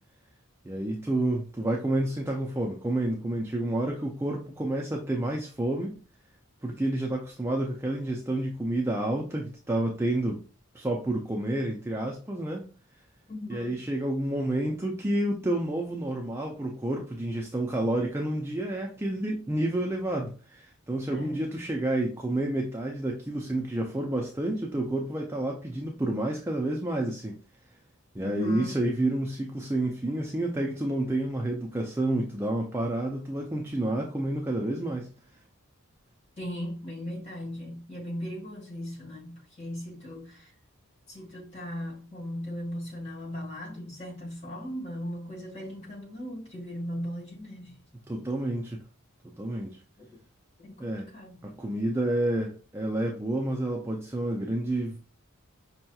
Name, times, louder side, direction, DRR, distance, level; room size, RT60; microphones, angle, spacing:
voice 1, 0.6-6.0 6.6-10.4 10.7-12.7 13.5-27.4 28.1-35.1 48.1-48.8 49.4-49.8 50.8-51.1 51.4-55.0, right 1 dB, 10° right, 0.3 m, -29 dB
voice 2, 13.3-13.8 21.1-21.4 28.2-28.8 36.4-40.5 41.1-47.8 50.0-50.1 50.6-51.4, equal, 30° left, 1.5 m, -38 dB
5.3 x 2.8 x 2.3 m
head